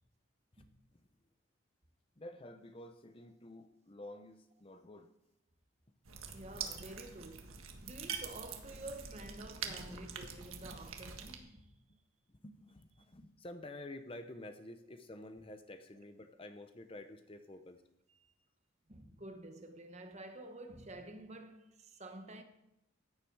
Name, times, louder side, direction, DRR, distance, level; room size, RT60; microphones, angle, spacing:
voice 1, 2.2-5.1 9.7-10.0 10.7-10.8 12.3-17.8, left 1 dB, 25° left, 0.7 m, -50 dB
sound 1, 6.1-11.4, right 6 dB, 85° right, 1.6 m, -45 dB
voice 2, 6.3-11.7 18.1-18.3 18.9-22.4, right 1 dB, 35° right, 1.2 m, -50 dB
15.5 x 10.0 x 4.7 m
head